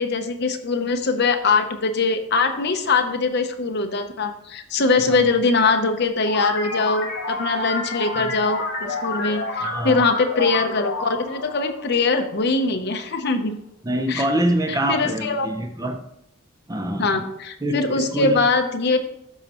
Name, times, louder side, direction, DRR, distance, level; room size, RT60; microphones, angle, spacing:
voice 1, 0.0-13.6 14.1-14.3 14.7-15.5 17.0-19.0, left 3 dB, 55° left, 7 dB, 0.8 m, -22 dB
sound 1, 6.3-12.5, left 2 dB, 70° left, 3.3 m, -29 dB
voice 2, 9.6-10.0 13.8-16.0 16.7-17.3 17.6-18.4, right 1 dB, 15° right, 6 dB, 0.6 m, -25 dB
13.0 x 5.4 x 3.0 m, 0.78 s
head